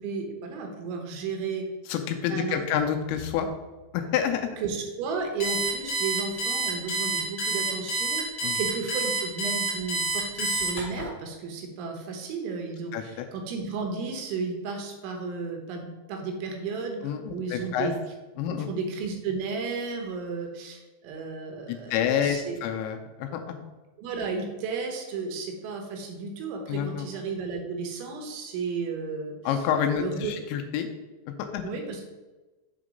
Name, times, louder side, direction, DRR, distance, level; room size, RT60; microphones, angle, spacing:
voice 1, 0.0-1.7 2.3-2.8 4.6-8.2 8.5-17.9 18.7-22.6 24.0-29.3 30.0-30.3 31.6-32.0, right 4 dB, 85° right, 3 dB, 3.4 m, -33 dB
voice 2, 1.9-3.5 3.9-4.5 8.4-8.6 12.9-13.3 17.0-17.9 18.4-18.7 21.7-23.6 26.7-27.1 29.5-30.9 31.4-31.7, left 8 dB, 85° left, 5 dB, 2.8 m, -28 dB
Alarm, 5.4-11.0, right 3 dB, 35° left, 2.8 m, -28 dB
7.2 x 3.8 x 5.1 m, 1.1 s
omnidirectional pair, 5.3 m